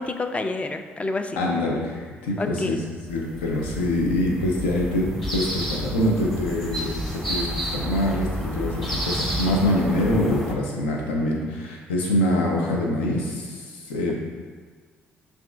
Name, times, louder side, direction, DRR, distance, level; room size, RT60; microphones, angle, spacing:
voice 1, 0.0-1.4 2.4-2.8, left 2 dB, 20° left, 7 dB, 0.3 m, -28 dB
voice 2, 1.4-2.8 3.1-14.1, left 1 dB, 80° left, -1 dB, 0.5 m, -25 dB
sound 1, 3.1-10.5, equal, 5° left, 0.7 m, -30 dB
5.8 x 2.5 x 2.3 m, 1.5 s
figure-of-eight pair, 45°, 6 cm